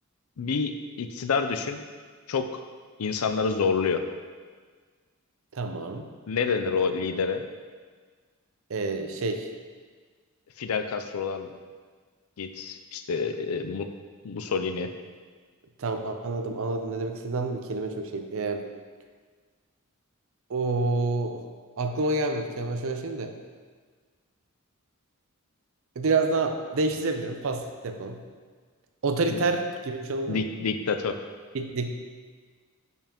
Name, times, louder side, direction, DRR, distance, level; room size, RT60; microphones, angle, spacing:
voice 1, 0.4-1.8 2.3-2.5 3.0-4.0 6.3-7.4 10.6-11.5 12.4-13.9 14.2-14.9 29.3-29.4 30.3-31.2, left 5 dB, 85° left, 8 dB, 0.5 m, -28 dB
voice 2, 5.5-6.1 8.7-9.5 15.8-18.6 20.5-21.4 21.8-23.3 26.0-28.2 29.0-30.4 31.5-31.9, right 3 dB, 65° right, 6 dB, 0.6 m, -28 dB
6.9 x 5.4 x 3.0 m, 1.5 s
head